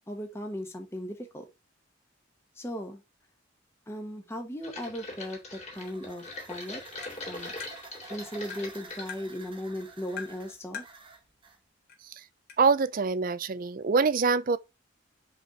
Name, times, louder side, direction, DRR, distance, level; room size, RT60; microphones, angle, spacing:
voice 1, 0.1-1.4 2.6-3.0 3.9-6.8 7.3-7.5 8.1-10.8, equal, 15° left, 1.0 m, -37 dB
sound 1, 4.6-9.1 9.6-10.1 10.4-10.5, left 2 dB, 35° left, 2.2 m, -42 dB
sound 2, 5.3-11.6, right 4 dB, 25° right, 1.1 m, -50 dB
Tap, 7.0-7.2 7.6-7.7 8.5-8.7 9.1-9.2 10.2-10.4 10.7-10.9 11.9-12.0 12.5-12.6, left 7 dB, 50° left, 2.1 m, -40 dB
voice 2, 12.6-14.6, right 4 dB, 45° right, 0.4 m, -25 dB
5.0 x 4.4 x 4.3 m
head